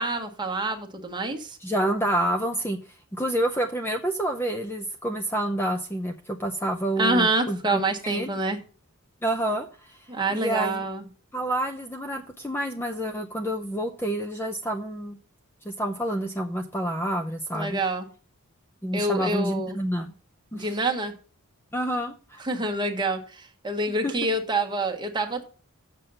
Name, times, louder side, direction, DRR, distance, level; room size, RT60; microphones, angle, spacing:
voice 1, 0.0-1.6 7.0-8.6 10.1-11.1 17.5-18.1 18.9-19.8 20.5-21.1 22.4-25.4, right 2 dB, 20° right, 4 dB, 1.3 m, -27 dB
voice 2, 1.6-8.3 9.2-10.8 11.3-15.2 15.6-17.8 18.8-20.1 20.5-20.7 21.7-22.4 23.9-24.1, right 1 dB, 10° left, 4 dB, 0.6 m, -28 dB
7.5 x 6.8 x 5.5 m, 0.39 s
head